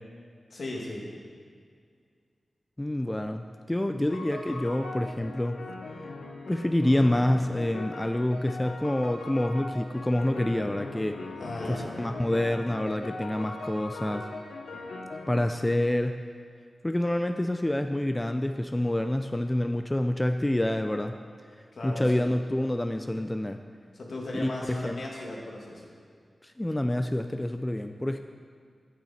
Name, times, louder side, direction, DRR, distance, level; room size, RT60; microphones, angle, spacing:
voice 1, 0.5-1.1 11.4-12.0 21.7-22.3 23.9-25.9, left 2 dB, 70° left, -2 dB, 1.9 m, -36 dB
voice 2, 2.8-5.6 6.5-11.2 11.7-14.3 15.3-16.2 16.8-21.2 21.8-23.6 24.3-25.0 26.4-28.2, left 1 dB, 15° left, 6 dB, 0.4 m, -27 dB
sound 1, 4.1-15.6, left 2 dB, 90° left, 0.8 m, -40 dB
8.8 x 8.7 x 4.2 m, 2.2 s
cardioid pair, 55°, 0 cm